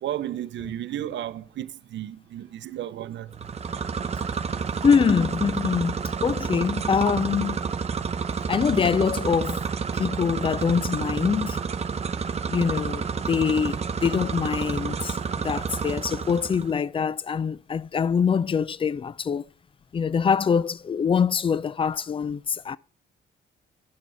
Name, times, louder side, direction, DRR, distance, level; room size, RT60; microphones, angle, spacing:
voice 1, 0.0-3.5, right 12 dB, 65° right, 0.7 m, -33 dB
sound 1, 3.3-16.7, right 6 dB, 35° right, 0.7 m, -29 dB
voice 2, 4.8-7.6 8.5-9.6 10.0-11.6 12.5-19.4 19.9-22.8, left 6 dB, 25° left, 0.4 m, -24 dB
10.5 x 6.2 x 4.6 m
cardioid pair, 90°, 20 cm